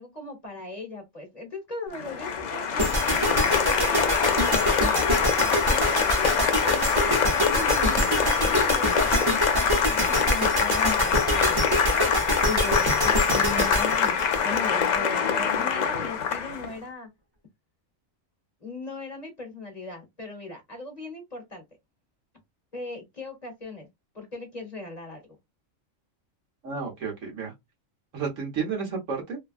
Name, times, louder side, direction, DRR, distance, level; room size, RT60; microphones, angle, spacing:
voice 1, 0.0-9.5 9.9-11.8 12.4-17.1 18.6-21.6 22.7-23.9 24.1-25.4, left 2 dB, 30° left, 1.1 m, -38 dB
Applause, 1.9-16.7, left 7 dB, 85° left, 0.4 m, -24 dB
sound 1, 2.8-15.0, equal, 20° right, 0.8 m, -26 dB
voice 2, 26.6-27.5 28.1-29.4, right 5 dB, 70° right, 1.5 m, -31 dB
3.2 x 2.2 x 2.4 m
omnidirectional pair, 1.4 m